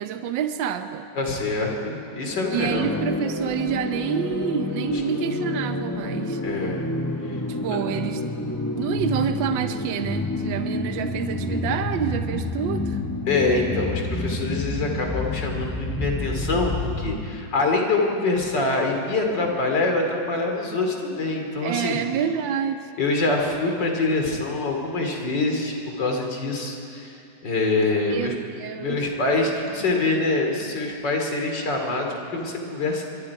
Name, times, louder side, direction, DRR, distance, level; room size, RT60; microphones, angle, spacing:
voice 1, 0.0-1.1 2.5-6.4 7.5-8.2 8.6-13.0 21.6-22.9 28.1-29.0, right 8 dB, 75° right, 8 dB, 1.5 m, -28 dB
voice 2, 1.2-2.9 6.4-6.8 7.3-7.4 7.7-7.8 13.3-22.1 23.0-28.3 28.8-33.0, left 3 dB, 65° left, 2 dB, 3.4 m, -25 dB
sound 1, 2.3-17.3, left 1 dB, 15° left, 0.9 m, -29 dB
26.0 x 22.5 x 4.8 m, 2.6 s
omnidirectional pair, 2.1 m